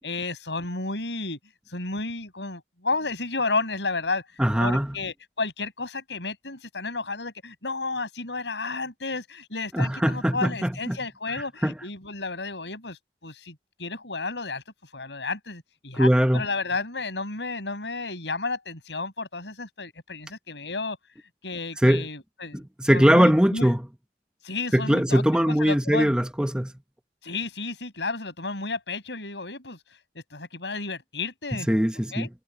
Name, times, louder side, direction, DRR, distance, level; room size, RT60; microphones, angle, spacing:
voice 1, 0.0-1.4 1.7-23.7 24.4-25.2 25.5-26.1 27.2-30.0 30.3-31.7 32.1-32.3, left 3 dB, 90° left, 6.9 m, -32 dB
voice 2, 4.4-4.9 9.7-11.0 11.6-11.7 16.0-16.4 21.8-22.1 22.5-23.8 24.7-26.7 31.7-32.3, equal, 5° right, 0.8 m, -21 dB
head